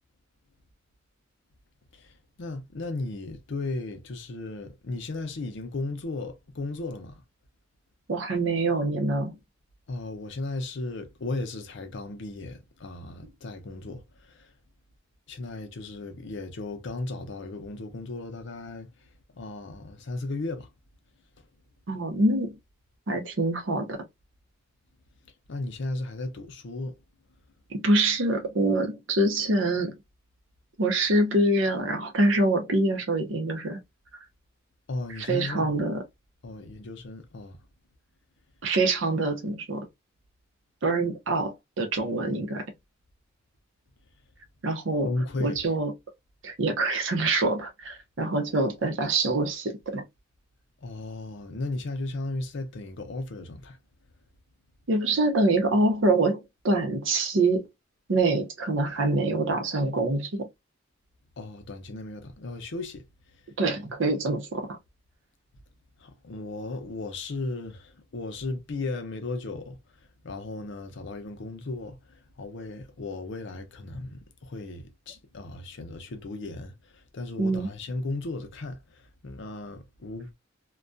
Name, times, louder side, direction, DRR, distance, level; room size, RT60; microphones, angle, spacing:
voice 1, 2.4-7.2 9.9-14.5 15.3-18.9 19.3-20.7 25.5-27.0 34.9-35.8 36.4-37.6 45.0-45.6 50.8-53.8 61.4-63.0 66.0-69.8 70.2-80.3, left 2 dB, 65° left, 0.6 m, -35 dB
voice 2, 8.1-9.4 21.9-22.6 23.1-24.1 27.7-29.9 30.8-33.8 35.2-36.0 38.6-39.9 40.8-42.7 44.6-45.1 45.4-45.9 46.4-50.0 54.9-57.7 58.1-60.5 63.6-64.8 77.4-77.7, right 2 dB, 70° right, 0.7 m, -25 dB
2.3 x 2.2 x 2.4 m
head